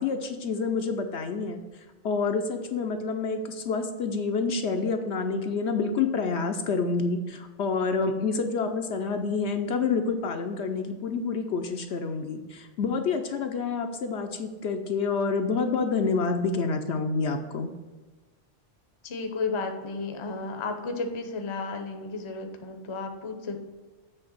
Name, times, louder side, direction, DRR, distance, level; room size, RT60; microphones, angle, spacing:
voice 1, 0.0-1.6 2.0-17.8, left 4 dB, 65° left, 5 dB, 0.8 m, -28 dB
voice 2, 19.0-23.7, left 3 dB, 30° left, 5 dB, 0.6 m, -33 dB
7.8 x 3.4 x 6.2 m, 1.3 s
omnidirectional pair, 1.3 m